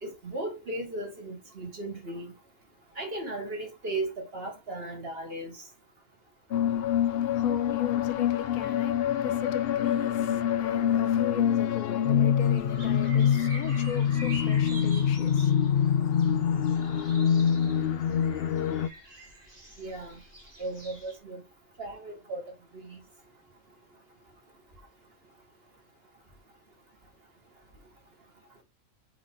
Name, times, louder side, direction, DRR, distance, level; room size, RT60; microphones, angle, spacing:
voice 1, 0.0-2.3 3.0-5.6 19.8-20.2 20.6-21.4 21.8-22.4 22.7-23.0, right 2 dB, 45° right, 2.2 m, -36 dB
sound 1, 6.5-18.9, left 9 dB, 60° left, 0.7 m, -25 dB
voice 2, 7.1-15.9, left 9 dB, 85° left, 1.3 m, -38 dB
sound 2, 12.4-21.2, right 1 dB, 30° right, 2.2 m, -47 dB
6.1 x 5.1 x 3.6 m
omnidirectional pair, 1.4 m